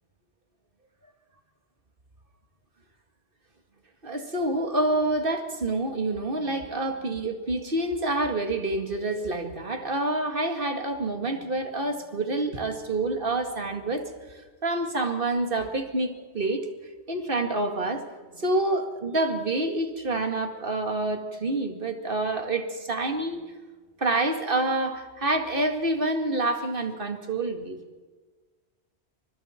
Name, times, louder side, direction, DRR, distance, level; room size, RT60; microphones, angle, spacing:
voice 1, 4.0-16.7 17.1-23.4 24.0-27.8, right 2 dB, 55° right, 5 dB, 2.3 m, -27 dB
29.0 x 25.0 x 4.5 m, 1.4 s
omnidirectional pair, 1.1 m